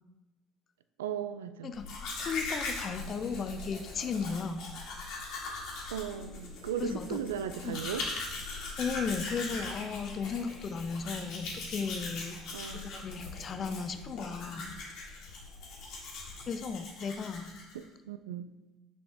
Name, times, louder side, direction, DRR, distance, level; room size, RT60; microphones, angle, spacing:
voice 1, 1.0-1.7 5.9-8.1 12.5-13.0 17.7-18.5, right 9 dB, 85° right, 11 dB, 0.3 m, -37 dB
voice 2, 1.6-4.6 6.8-7.2 7.6-7.8 8.8-12.4 12.7-14.8 16.5-17.5, left 5 dB, 40° left, 10 dB, 0.6 m, -35 dB
Domestic sounds home sounds, 1.7-17.8, left 3 dB, 60° left, 1.6 m, -40 dB
6.0 x 5.2 x 3.4 m, 1.1 s
hypercardioid pair, 65°, 0 cm